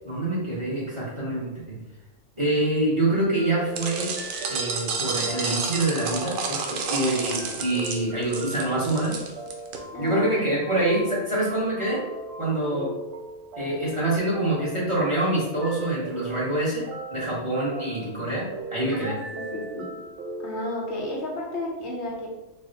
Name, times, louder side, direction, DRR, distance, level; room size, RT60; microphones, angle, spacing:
voice 1, 0.0-1.8 2.4-4.1 4.5-9.1 10.0-12.0 12.4-12.9 13.6-16.8 17.1-19.1, right 1 dB, 25° right, -6 dB, 1.0 m, -26 dB
sound 1, 3.1-21.0, right 2 dB, 60° right, 0.8 m, -39 dB
sound 2, 3.8-9.8, right 4 dB, 90° right, 1.0 m, -30 dB
voice 2, 9.9-10.8 18.9-19.9 20.4-22.3, left 2 dB, 60° left, -2 dB, 1.0 m, -33 dB
4.1 x 2.1 x 3.9 m, 0.99 s
omnidirectional pair, 1.4 m